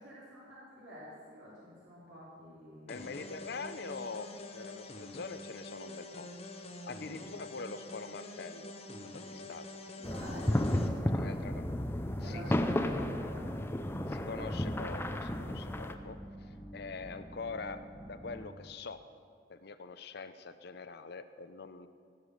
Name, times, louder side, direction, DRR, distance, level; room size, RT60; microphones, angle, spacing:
voice 1, 0.0-3.2 10.0-11.7 12.2-13.6, left 1 dB, 85° right, -7 dB, 3.3 m, -49 dB
voice 2, 2.9-8.7 9.1-9.7 11.1-11.6 12.2-12.6 14.1-16.2 16.7-19.0 19.5-21.9, left 4 dB, 60° left, 11 dB, 0.6 m, -44 dB
sound 1, 2.9-10.9, left 2 dB, 35° left, 0.9 m, -46 dB
sound 2, 10.0-15.9, left 1 dB, 15° left, 0.6 m, -33 dB
sound 3, 11.4-18.5, right 1 dB, 15° right, 1.5 m, -49 dB
16.5 x 7.3 x 6.5 m, 2.1 s
head